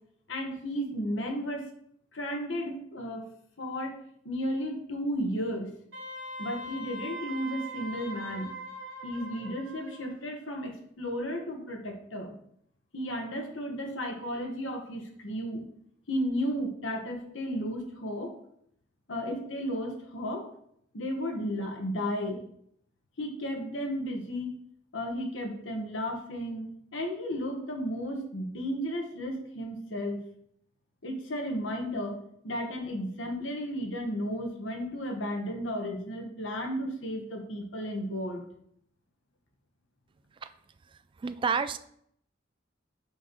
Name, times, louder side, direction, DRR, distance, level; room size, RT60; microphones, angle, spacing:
voice 1, 0.3-1.6 2.1-3.3 3.6-4.0 4.2-5.7 6.4-8.5 9.0-12.3 12.9-15.6 16.1-18.3 19.1-20.5 20.9-22.4 23.2-24.5 24.9-30.3 31.0-32.2 32.4-38.4, equal, 75° left, 2 dB, 1.3 m, -33 dB
Wind instrument woodwind instrument, 5.9-10.1, right 1 dB, 85° right, 1.3 m, -41 dB
voice 2, 41.2-41.8, right 5 dB, 25° right, 11 dB, 0.3 m, -28 dB
6.1 x 3.1 x 5.2 m, 0.68 s
head